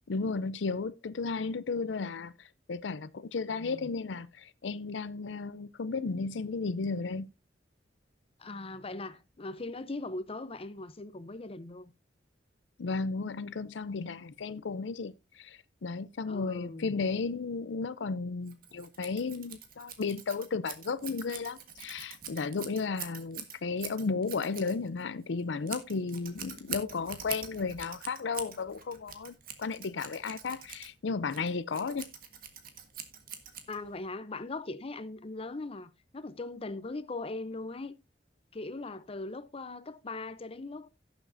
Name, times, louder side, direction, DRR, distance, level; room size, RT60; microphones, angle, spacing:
voice 1, 0.1-7.3 12.8-32.1, left 4 dB, 85° left, 0.5 m, -34 dB
voice 2, 3.5-3.9 8.4-11.9 16.3-16.9 33.7-37.9 38.5-40.9, left 2 dB, 35° left, 0.7 m, -40 dB
Scissors, 18.4-34.1, right 8 dB, 55° right, 1.6 m, -44 dB
17.0 x 7.0 x 2.6 m
head